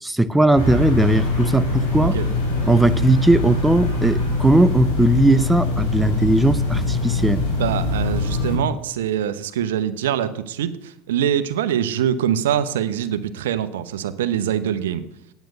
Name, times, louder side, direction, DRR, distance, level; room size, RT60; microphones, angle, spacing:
voice 1, 0.0-2.2 2.7-7.4, right 2 dB, 5° right, 13 dB, 0.7 m, -18 dB
sound 1, 0.6-8.6, left 2 dB, 90° left, 3.7 m, -23 dB
voice 2, 7.3-15.0, right 10 dB, 85° right, 12 dB, 0.8 m, -24 dB
9.2 x 9.2 x 6.6 m, 0.82 s
hypercardioid pair, 90°, 0 cm